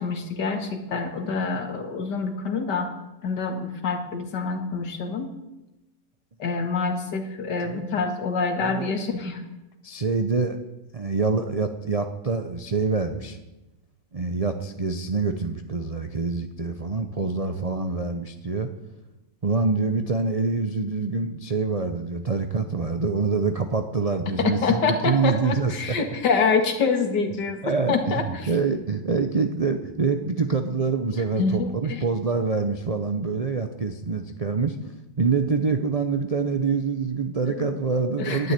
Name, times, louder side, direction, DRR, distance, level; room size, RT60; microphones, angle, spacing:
voice 1, 0.0-2.9 3.2-5.3 6.4-9.4 24.4-28.5 31.1-32.0 37.5-37.7 38.2-38.5, left 4 dB, 80° left, 5 dB, 2.3 m, -26 dB
voice 2, 7.6-8.1 8.6-8.9 9.8-10.6 10.9-13.4 14.1-18.7 19.4-25.7 27.6-34.8 35.2-38.5, right 4 dB, 40° right, 7 dB, 0.5 m, -26 dB
11.0 x 9.5 x 9.9 m, 1.0 s
omnidirectional pair, 1.8 m